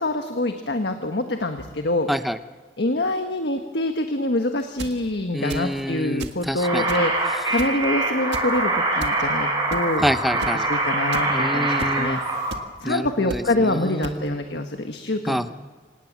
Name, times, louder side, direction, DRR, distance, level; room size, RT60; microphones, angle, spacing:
voice 1, 0.0-2.1 2.8-10.0 10.7-12.2 12.8-15.4, left 1 dB, 75° left, 6 dB, 1.4 m, -25 dB
voice 2, 2.1-2.4 5.3-6.9 10.0-10.7 11.3-12.2 12.8-14.4 15.3-15.5, equal, ahead, 11 dB, 0.6 m, -27 dB
sound 1, 4.6-5.0 5.5-5.8 6.2-6.4 6.9-7.2 7.6-7.8 8.3-8.5 9.0-9.1 9.7-10.0 10.4-10.5 11.1-11.2 11.8-11.9 12.5-12.6 13.3-13.4 14.0-14.2, right 2 dB, 80° right, 1.9 m, -34 dB
sound 2, 6.6-12.5, right 2 dB, 20° right, 6.7 m, -24 dB
26.0 x 18.5 x 7.5 m, 1.4 s
head